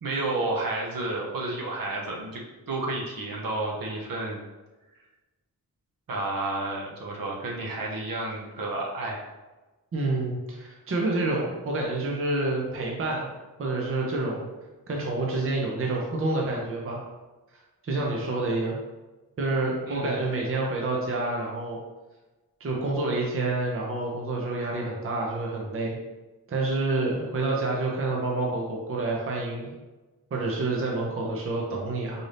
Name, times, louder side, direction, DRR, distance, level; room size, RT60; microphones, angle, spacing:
voice 1, 0.0-2.4 2.7-4.4 6.1-9.2 19.9-20.2, right 2 dB, 65° right, -2 dB, 0.9 m, -31 dB
voice 2, 9.9-13.3 13.6-14.5 14.9-17.0 17.8-18.8 19.4-21.8 22.6-26.0 26.5-29.7 30.3-32.3, right 2 dB, 35° right, -2 dB, 0.6 m, -28 dB
4.0 x 2.6 x 3.3 m, 1.2 s
wide cardioid pair, 130°, 37 cm